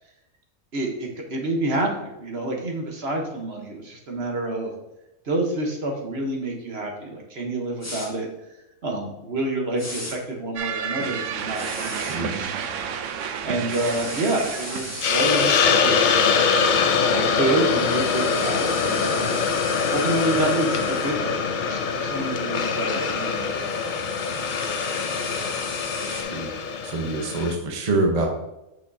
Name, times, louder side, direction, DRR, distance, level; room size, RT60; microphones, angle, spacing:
voice 1, 0.7-4.7 5.2-8.3 8.8-12.9 13.4-16.4 17.0-19.4 19.9-24.3, right 2 dB, 50° right, 1 dB, 1.2 m, -28 dB
sound 1, 7.8-8.1 9.8-10.1 11.5-12.2 13.7-15.5 17.5-21.1 23.2-26.2, left 1 dB, 10° left, 1.2 m, -37 dB
sound 2, 10.6-15.6, right 7 dB, 65° right, 0.9 m, -31 dB
Hiss, 15.0-27.5, left 5 dB, 65° left, 0.4 m, -23 dB
voice 2, 26.1-26.5 26.8-28.3, right 2 dB, 30° right, 1 dB, 0.9 m, -25 dB
8.3 x 6.2 x 2.7 m, 0.91 s
omnidirectional pair, 1.5 m